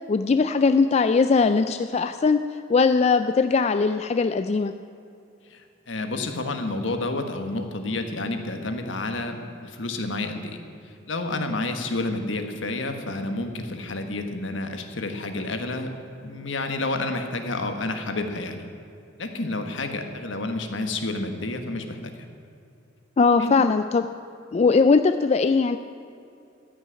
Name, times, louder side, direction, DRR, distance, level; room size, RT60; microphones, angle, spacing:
voice 1, 0.1-2.4 2.7-4.7 23.2-24.0 24.5-25.8, left 4 dB, 35° left, 9 dB, 0.3 m, -20 dB
voice 2, 5.5-10.6 10.9-15.9 16.2-18.7 19.2-22.1 23.3-23.6, left 2 dB, 70° left, 6 dB, 1.4 m, -30 dB
14.5 x 6.4 x 9.7 m, 2.5 s
head